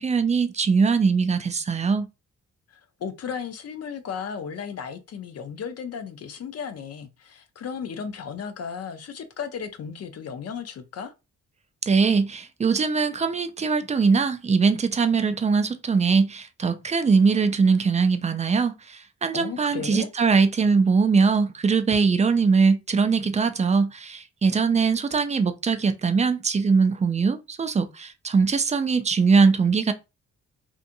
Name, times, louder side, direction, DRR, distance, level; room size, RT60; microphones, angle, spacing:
voice 1, 0.0-2.1 11.9-29.9, right 5 dB, 25° right, 0.4 m, -21 dB
voice 2, 3.0-11.1 19.3-20.1, left 6 dB, 55° left, 0.5 m, -35 dB
2.7 x 2.5 x 2.6 m
cardioid pair, 85°, 30 cm